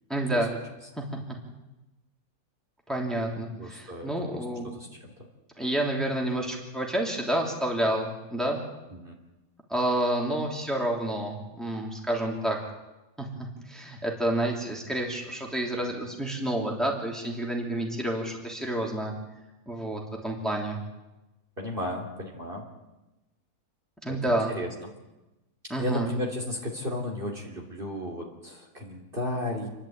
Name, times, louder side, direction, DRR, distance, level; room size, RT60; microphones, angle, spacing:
voice 1, 0.1-0.5 2.9-4.8 5.6-8.6 9.7-12.6 13.2-19.1 19.7-20.8 24.0-24.5 25.7-26.1, right 1 dB, ahead, -1 dB, 3.2 m, -29 dB
voice 2, 3.6-4.4 4.7-5.1 8.9-9.1 21.6-22.6 24.1-24.7 25.8-29.7, left 1 dB, 35° right, 0 dB, 3.3 m, -34 dB
29.0 x 11.5 x 9.0 m, 1.0 s
omnidirectional pair, 1.6 m